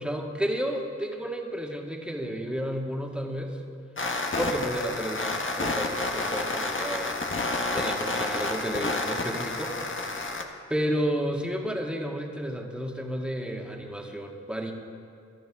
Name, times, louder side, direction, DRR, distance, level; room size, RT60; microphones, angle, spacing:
voice 1, 0.0-3.6 4.4-7.2 7.7-9.9 10.7-14.7, equal, 5° right, 0 dB, 2.1 m, -31 dB
sound 1, 4.0-10.4, left 2 dB, 40° left, 1.4 m, -30 dB
16.0 x 12.0 x 3.7 m, 2.3 s
supercardioid pair, 40°, 31 cm